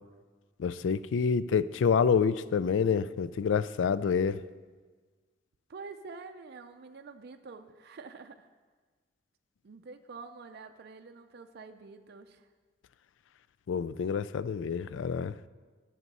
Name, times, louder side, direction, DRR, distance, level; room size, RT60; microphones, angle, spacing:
voice 1, 0.6-4.4 13.7-15.3, left 6 dB, 75° left, 16 dB, 0.3 m, -27 dB
voice 2, 5.7-8.5 9.6-12.5, right 4 dB, 55° right, 6 dB, 0.4 m, -47 dB
11.0 x 7.4 x 5.4 m, 1.4 s
head